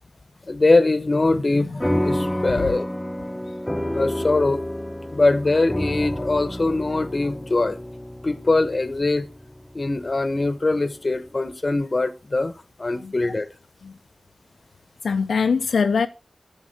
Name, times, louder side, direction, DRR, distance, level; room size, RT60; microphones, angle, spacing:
voice 1, 0.5-2.8 3.9-4.6 5.1-7.8 8.2-9.3 9.7-12.5 12.8-13.5, left 2 dB, 45° left, 0.8 m, -22 dB
sound 1, 1.8-10.6, equal, 10° left, 0.9 m, -29 dB
voice 2, 15.0-16.1, left 5 dB, 90° left, 0.4 m, -23 dB
10.5 x 7.3 x 3.2 m
cardioid pair, 40°, 0 cm